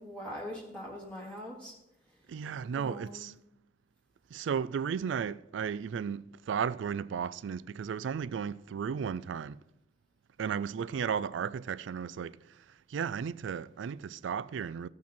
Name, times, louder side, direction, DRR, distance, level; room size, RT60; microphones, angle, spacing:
voice 1, 0.0-1.7 2.1-2.3 2.7-3.3, equal, 5° left, 1.5 m, -42 dB
voice 2, 2.3-3.3 4.3-9.6 10.4-12.6 12.9-14.9, right 7 dB, 80° right, 0.3 m, -34 dB
15.5 x 6.0 x 4.4 m
head